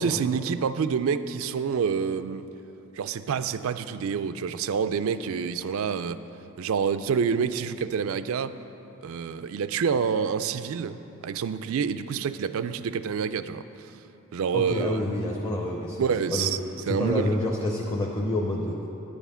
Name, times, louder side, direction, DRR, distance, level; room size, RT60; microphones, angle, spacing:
voice 1, 0.0-2.5 2.9-6.2 6.6-8.6 9.0-13.6 14.3-15.0 16.0-16.6 16.9-17.3, right 6 dB, 70° right, 13 dB, 0.3 m, -27 dB
voice 2, 14.5-16.5 16.9-18.9, left 1 dB, 20° left, -1 dB, 0.6 m, -28 dB
9.9 x 7.1 x 5.6 m, 3.0 s
head